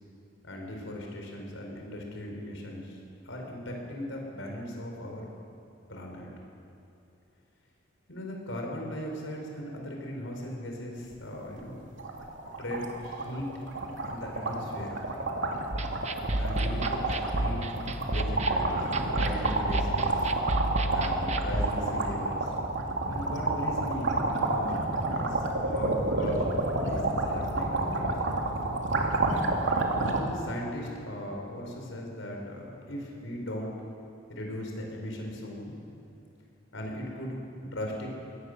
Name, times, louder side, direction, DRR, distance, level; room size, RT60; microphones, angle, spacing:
voice 1, 0.4-3.0 3.2-5.3 5.9-6.3 8.1-11.8 12.6-13.5 14.0-15.0 16.4-17.7 18.0-20.3 20.9-22.5 23.1-24.7 25.1-26.4 26.7-28.1 30.1-33.7 34.3-35.8 36.7-38.1, left 1 dB, 85° left, 0 dB, 4.7 m, -38 dB
sound 1, 11.1-11.3 11.6-11.7 12.0-30.2, right 2 dB, 75° right, 2.6 m, -29 dB
sound 2, 15.7-21.7, right 1 dB, 35° right, 1.1 m, -31 dB
23.0 x 18.0 x 6.7 m, 2.6 s
head